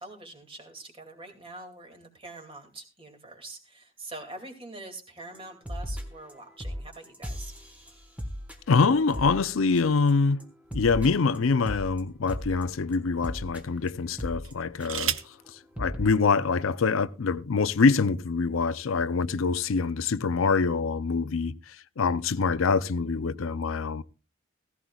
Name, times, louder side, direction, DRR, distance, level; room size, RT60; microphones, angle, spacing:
voice 1, 0.0-7.5, right 2 dB, 25° right, 2.4 m, -44 dB
sound 1, 5.3-5.4 5.7-6.3 6.6-10.1 10.4-15.2 15.5-15.6 15.8-16.1, equal, 5° right, 1.3 m, -38 dB
voice 2, 8.7-10.4 10.7-15.2 15.5-24.0, left 4 dB, 75° left, 0.5 m, -25 dB
sound 2, 10.6-11.9 12.6-12.7 14.4-15.4 16.6-16.7 17.0-17.4, right 11 dB, 75° right, 0.8 m, -35 dB
16.5 x 15.0 x 2.3 m
head